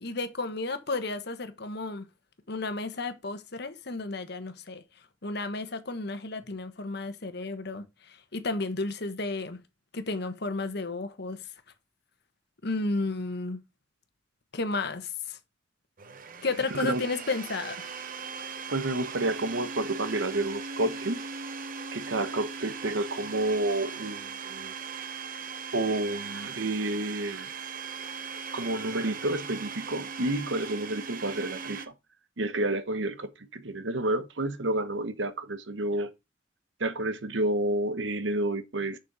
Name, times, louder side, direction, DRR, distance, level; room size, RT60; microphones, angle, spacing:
voice 1, 0.0-2.0 2.5-9.6 9.9-11.4 12.6-13.6 14.5-15.4 16.4-17.9, left 3 dB, 60° left, 1.3 m, -33 dB
Domestic sounds home sounds, 16.0-31.9, right 5 dB, 45° right, 0.9 m, -39 dB
voice 2, 16.7-17.0 18.7-21.2 21.9-24.7 25.7-27.5 28.5-31.9 32.4-36.1 36.8-39.0, right 2 dB, 70° right, 1.1 m, -30 dB
6.9 x 6.4 x 4.7 m
head